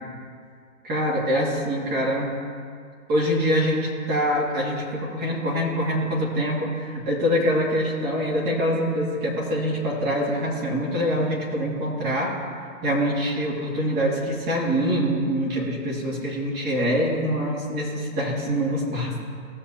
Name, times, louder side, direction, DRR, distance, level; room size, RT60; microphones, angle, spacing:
voice 1, 0.8-2.3 3.1-12.3 12.8-19.2, equal, 25° right, -4 dB, 2.4 m, -24 dB
17.0 x 7.0 x 2.9 m, 2.2 s
hypercardioid pair, 130°, 42 cm